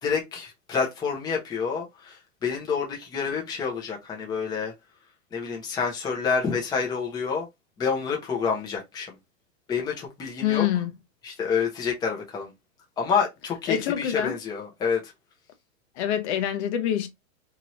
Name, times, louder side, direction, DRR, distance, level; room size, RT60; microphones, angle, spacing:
voice 1, 0.0-4.7 5.3-7.5 7.8-9.2 9.7-10.7 11.2-12.5 13.0-15.1, left 6 dB, 10° left, 0.6 m, -28 dB
voice 2, 10.4-10.9 13.7-14.3 16.0-17.1, left 10 dB, 55° left, 0.7 m, -25 dB
2.9 x 2.5 x 3.0 m
hypercardioid pair, 140°, 41 cm